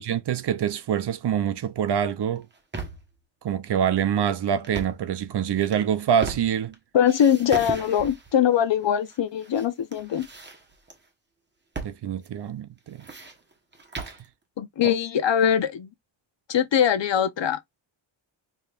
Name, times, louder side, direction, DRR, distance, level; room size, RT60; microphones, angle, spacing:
voice 1, 0.0-2.5 3.4-6.7 11.8-13.1 14.8-14.9, right 9 dB, 55° right, 0.6 m, -25 dB
sound 1, 2.4-3.1 4.6-5.1 5.6-6.7 7.0-8.3 9.1-9.7 9.9-11.0 11.7-12.0 12.2-12.3 12.8-14.3, right 3 dB, 20° right, 1.0 m, -36 dB
voice 2, 6.9-10.3 14.6-15.9 16.5-17.8, left 9 dB, 65° left, 0.8 m, -22 dB
5.0 x 3.0 x 2.4 m
wide cardioid pair, 165°, 48 cm